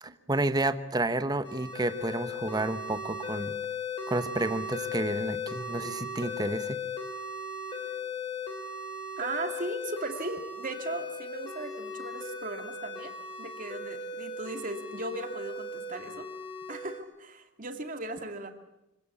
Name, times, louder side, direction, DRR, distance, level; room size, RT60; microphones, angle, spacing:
voice 1, 0.0-3.5 4.1-6.8, right 2 dB, 20° right, 12 dB, 1.0 m, -30 dB
sound 1, 1.4-17.0, left 3 dB, 25° left, 3.9 m, -37 dB
voice 2, 9.2-13.1 13.4-16.3 16.7-18.5, right 2 dB, 40° right, 6 dB, 2.4 m, -37 dB
25.0 x 17.5 x 8.5 m, 0.89 s
head